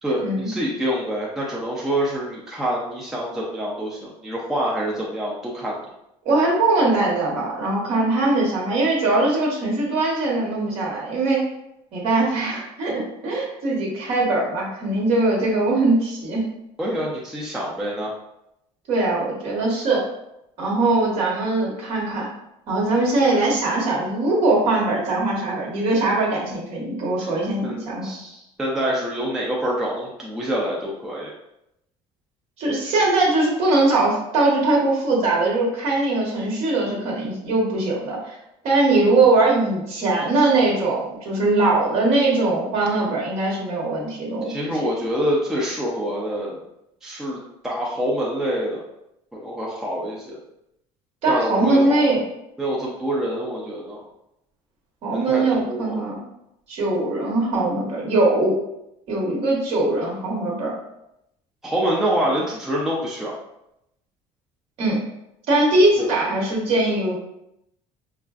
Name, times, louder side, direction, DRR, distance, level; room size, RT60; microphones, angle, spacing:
voice 1, 0.0-5.8 16.8-18.1 27.6-31.3 44.5-46.6 47.0-48.8 49.3-50.4 51.3-52.1 52.6-54.0 55.1-56.0 61.6-63.3 66.0-66.1, equal, 5° right, -4 dB, 0.4 m, -26 dB
voice 2, 6.2-11.4 11.9-16.4 18.9-20.0 20.6-22.3 22.7-28.1 32.6-38.4 38.6-44.7 51.2-52.2 55.0-56.2 56.7-58.6 59.1-60.8 64.8-65.0 65.5-67.2, right 2 dB, 50° right, -2 dB, 1.2 m, -21 dB
5.3 x 2.4 x 2.4 m, 0.83 s
cardioid pair, 170°, 13 cm